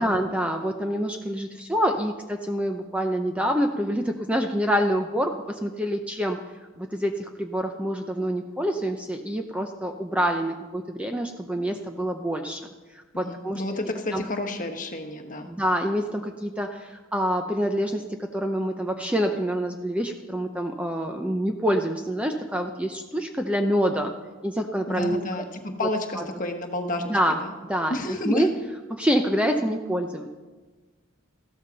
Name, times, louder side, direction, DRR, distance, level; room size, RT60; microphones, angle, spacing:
voice 1, 0.0-6.4 6.8-12.6 13.2-13.6 14.1-14.2 15.5-24.1 24.4-25.5 26.2-26.3 27.0-27.4 27.7-28.5 28.9-30.3, equal, 5° right, 4 dB, 0.6 m, -26 dB
voice 2, 13.1-15.5 24.9-27.5 27.9-28.5, left 1 dB, 40° left, 4 dB, 1.3 m, -30 dB
14.5 x 13.0 x 4.0 m, 1.3 s
head